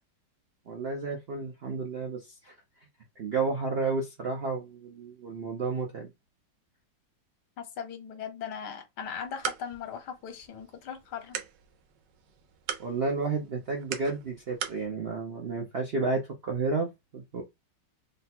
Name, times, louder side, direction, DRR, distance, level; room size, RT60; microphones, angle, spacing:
voice 1, 0.7-2.5 3.2-6.1 12.8-17.4, right 4 dB, 60° right, 0.6 m, -31 dB
voice 2, 7.6-11.4, left 7 dB, 70° left, 1.3 m, -39 dB
sound 1, 9.0-14.9, right 9 dB, 80° right, 1.3 m, -41 dB
3.2 x 2.2 x 4.2 m
omnidirectional pair, 1.9 m